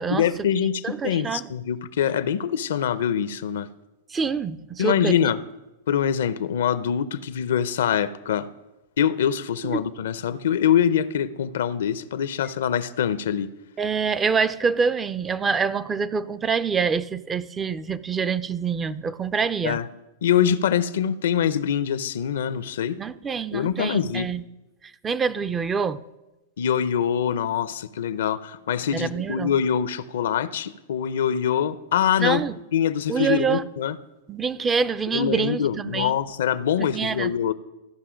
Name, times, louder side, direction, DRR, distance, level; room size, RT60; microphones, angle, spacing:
voice 1, 0.1-3.7 4.8-5.4 5.9-8.5 9.0-13.5 19.6-19.9 20.2-23.0 23.5-24.3 26.6-32.4 32.7-34.0 35.1-37.5, left 8 dB, 75° left, 0.6 m, -24 dB
voice 2, 0.8-1.5 4.1-5.2 9.6-9.8 13.8-19.8 23.0-24.4 25.0-26.0 28.9-29.5 32.2-32.6 33.1-33.6 34.3-36.1 36.8-37.3, right 5 dB, 20° right, 0.5 m, -26 dB
14.5 x 5.5 x 5.1 m
hypercardioid pair, 120°, 0 cm